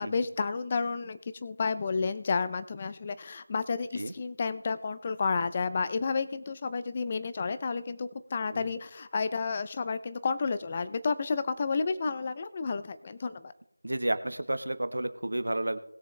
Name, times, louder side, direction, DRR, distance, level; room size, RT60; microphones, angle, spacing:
voice 1, 0.0-13.5, left 4 dB, 20° left, 13 dB, 0.4 m, -31 dB
voice 2, 13.8-15.8, right 1 dB, 75° right, 11 dB, 1.2 m, -31 dB
20.0 x 6.8 x 3.3 m, 0.80 s
figure-of-eight pair, 175°, 0 cm